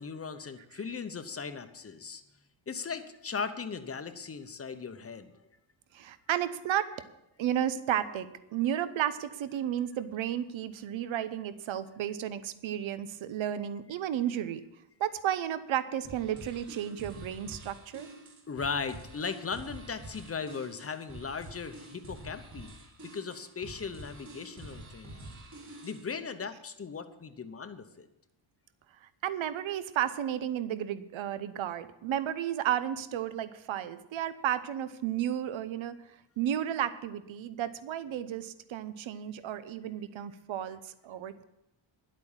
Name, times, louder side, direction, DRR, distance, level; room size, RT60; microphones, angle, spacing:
voice 1, 0.0-2.2 2.7-5.3 18.5-22.7 23.0-25.3 25.8-28.1, left 5 dB, 30° left, 9 dB, 0.9 m, -38 dB
voice 2, 5.9-6.9 7.4-14.6 15.0-18.1 29.2-36.0 36.4-41.4, right 10 dB, 75° right, 13 dB, 0.9 m, -33 dB
sound 1, 16.0-26.1, right 1 dB, 35° right, 2.9 m, -48 dB
11.0 x 8.5 x 7.3 m, 0.87 s
wide cardioid pair, 145°, 47 cm